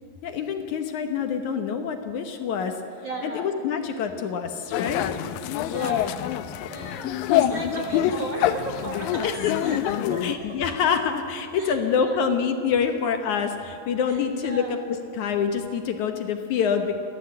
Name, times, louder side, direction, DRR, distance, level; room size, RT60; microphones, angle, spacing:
voice 1, 0.2-2.8 3.2-5.0 6.7-8.1 9.2-9.5 10.2-14.8 15.1-17.0, left 7 dB, 65° left, 6 dB, 2.3 m, -26 dB
voice 2, 3.0-3.5 5.7-6.1 6.7-9.3 9.6-9.8 10.1-10.6 11.6-12.2 14.1-14.7, right 2 dB, 45° right, 0 dB, 1.8 m, -35 dB
sound 1, 4.7-10.4, left 10 dB, 90° left, 2.5 m, -26 dB
29.5 x 12.5 x 7.8 m, 2.6 s
omnidirectional pair, 3.9 m